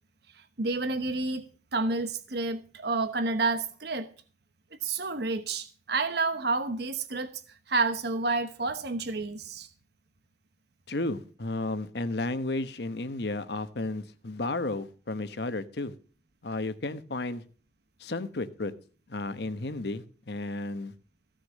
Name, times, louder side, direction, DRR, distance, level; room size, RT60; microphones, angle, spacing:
voice 1, 0.3-1.4 1.7-4.1 4.7-9.7, right 3 dB, 65° right, 1.1 m, -30 dB
voice 2, 10.9-15.9 16.4-17.4 18.0-18.7 19.1-20.9, left 2 dB, 65° left, 1.1 m, -33 dB
15.5 x 6.5 x 7.4 m
head